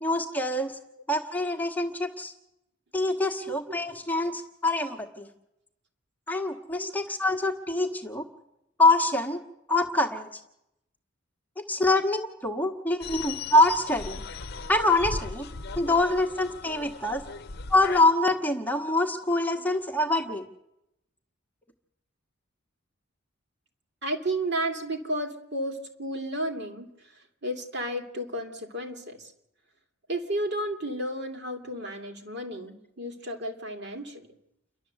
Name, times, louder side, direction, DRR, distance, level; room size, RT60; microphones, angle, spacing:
voice 1, 0.0-0.8 1.1-2.3 2.9-5.3 6.3-8.2 8.8-9.4 9.7-10.4 11.7-14.2 14.7-15.5 15.8-17.2 17.7-20.4, left 2 dB, 10° left, 3 dB, 1.3 m, -25 dB
sound 1, 13.0-18.1, left 4 dB, 50° left, 0.8 m, -38 dB
voice 2, 24.0-29.3 30.1-34.3, right 1 dB, 55° right, 4 dB, 2.6 m, -33 dB
29.0 x 12.0 x 8.0 m, 0.86 s
head